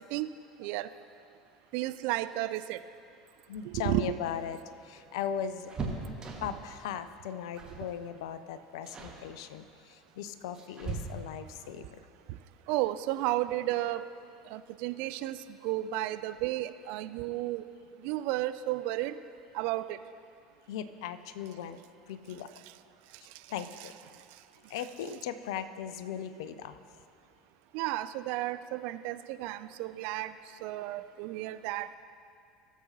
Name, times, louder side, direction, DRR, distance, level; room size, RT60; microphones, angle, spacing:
voice 1, 1.7-2.8 3.7-4.2 12.7-14.0 14.5-15.4 15.6-17.6 18.0-19.2 19.5-20.0 27.7-30.3 30.6-31.9, right 15 dB, 55° right, 12 dB, 0.3 m, -32 dB
voice 2, 3.5-5.7 6.4-12.0 20.7-21.8 22.1-22.5 23.5-24.0 24.7-26.8, left 8 dB, 65° left, 12 dB, 0.5 m, -38 dB
sound 1, 4.0-6.7 7.5-7.9 8.2-8.4 8.9-9.2 10.1-11.5 13.3-13.4 13.8-13.9 15.0-15.5 15.8-15.9 16.2-16.4, right 3 dB, 25° right, 1.5 m, -40 dB
18.0 x 7.2 x 2.8 m, 2.5 s
figure-of-eight pair, 70°, 3 cm